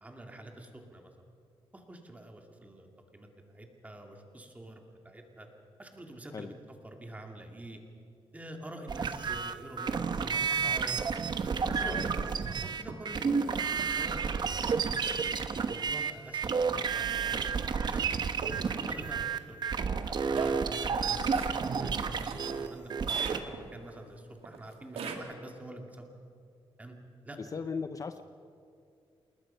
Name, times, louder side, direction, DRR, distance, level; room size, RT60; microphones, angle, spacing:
voice 1, 0.0-1.1 1.7-2.9 3.1-5.5 5.8-6.5 6.8-7.8 8.3-11.1 11.6-14.5 15.2-17.5 17.9-21.3 21.8-26.1 26.8-27.0 27.2-27.7, right 1 dB, 15° right, 3 dB, 2.4 m, -47 dB
sound 1, 8.9-23.4, right 6 dB, 45° right, 0.9 m, -31 dB
voice 2, 11.6-12.0 13.2-13.4 18.4-18.5 27.5-28.2, left 5 dB, 35° left, 9 dB, 0.6 m, -38 dB
sound 2, 12.0-12.2 12.9-13.2 13.8-14.2 14.7-15.1 15.7-16.1 16.7-17.0 17.8-17.9 18.4-19.1 19.8-22.8 23.1-23.9 24.4-25.2, right 5 dB, 75° right, 2.2 m, -41 dB
28.0 x 20.0 x 5.6 m, 2.4 s
wide cardioid pair, 145°, 10 cm